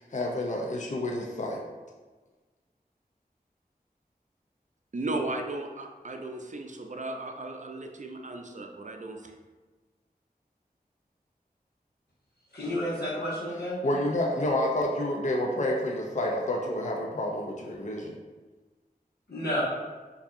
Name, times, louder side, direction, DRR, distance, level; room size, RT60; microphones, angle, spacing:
voice 1, 0.0-1.6 13.8-18.2, left 1 dB, 50° left, -1 dB, 0.5 m, -29 dB
voice 2, 4.9-9.4, right 2 dB, 50° right, 3 dB, 0.4 m, -36 dB
voice 3, 12.5-13.8 19.3-19.6, equal, 85° left, -8 dB, 1.3 m, -31 dB
4.6 x 2.7 x 2.6 m, 1.3 s
wide cardioid pair, 50°, 16 cm